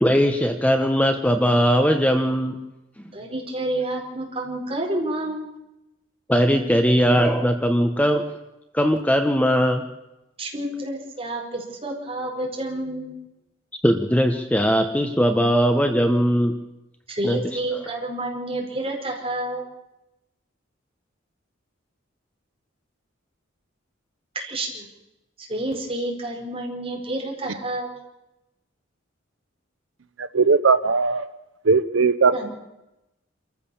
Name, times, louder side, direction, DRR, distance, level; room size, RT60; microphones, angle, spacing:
voice 1, 0.0-2.6 6.3-8.2 8.7-9.8 13.8-16.6 17.2-17.4, equal, 5° left, 6 dB, 1.1 m, -19 dB
voice 2, 3.1-5.5 10.4-13.2 17.1-19.7 24.3-24.9 25.4-28.0 32.3-32.5, right 1 dB, 30° right, 0 dB, 4.7 m, -29 dB
voice 3, 30.3-31.2 31.7-32.3, right 4 dB, 80° right, 12 dB, 0.8 m, -18 dB
26.5 x 14.5 x 7.1 m, 0.94 s
head